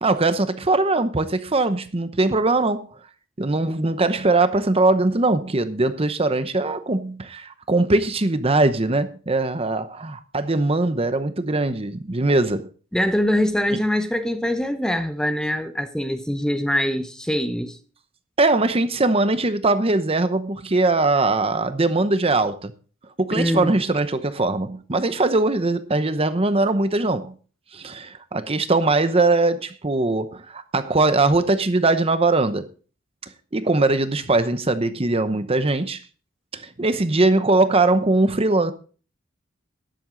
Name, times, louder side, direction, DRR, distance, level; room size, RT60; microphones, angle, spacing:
voice 1, 0.0-2.9 3.4-12.7 18.4-22.7 23.2-27.3 27.7-32.7 33.5-36.0 36.5-38.7, right 2 dB, 30° right, 0.8 m, -21 dB
voice 2, 12.9-17.8 23.3-23.8, left 1 dB, 5° left, 0.8 m, -23 dB
12.5 x 10.5 x 3.9 m
head